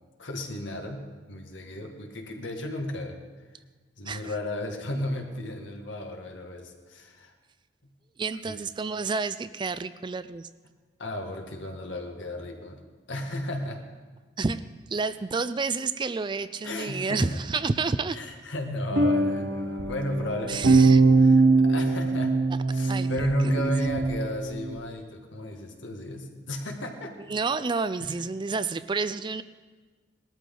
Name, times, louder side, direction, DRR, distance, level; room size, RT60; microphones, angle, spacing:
voice 1, 0.2-1.0 1.3-3.2 4.0-7.3 8.4-8.6 11.0-12.8 13.1-13.8 16.6-17.4 18.1-22.4 22.7-27.1 28.0-28.1, left 1 dB, 80° left, 2 dB, 2.0 m, -34 dB
voice 2, 8.2-10.5 14.4-14.6 14.9-18.2 20.5-21.0 22.8-23.3 23.6-23.7 27.3-29.4, right 4 dB, 25° right, 14 dB, 0.4 m, -30 dB
sound 1, 18.9-24.8, right 3 dB, 65° right, 0.9 m, -22 dB
20.0 x 13.0 x 3.9 m, 1.3 s
head